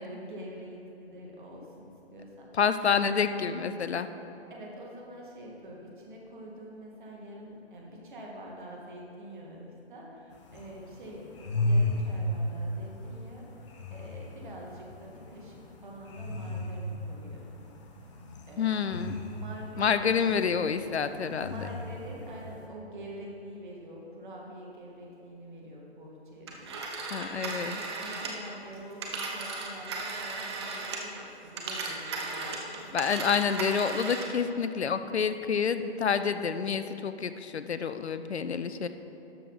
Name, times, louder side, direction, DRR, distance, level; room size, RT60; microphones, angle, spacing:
voice 1, 0.0-2.5 4.5-13.6 13.9-17.5 18.5-18.8 19.3-20.1 21.4-26.9 27.2-33.2, equal, 45° right, -1 dB, 2.0 m, -45 dB
voice 2, 2.6-4.1 18.6-19.2 19.8-21.6 27.1-27.8 32.9-38.9, left 6 dB, 70° left, 11 dB, 0.6 m, -28 dB
sound 1, 10.3-22.7, left 1 dB, 25° left, 0.8 m, -35 dB
Telephone, 26.5-31.2 31.5-34.4, right 3 dB, 25° right, 0.8 m, -36 dB
12.5 x 6.3 x 4.1 m, 3.0 s
figure-of-eight pair, 140°, 33 cm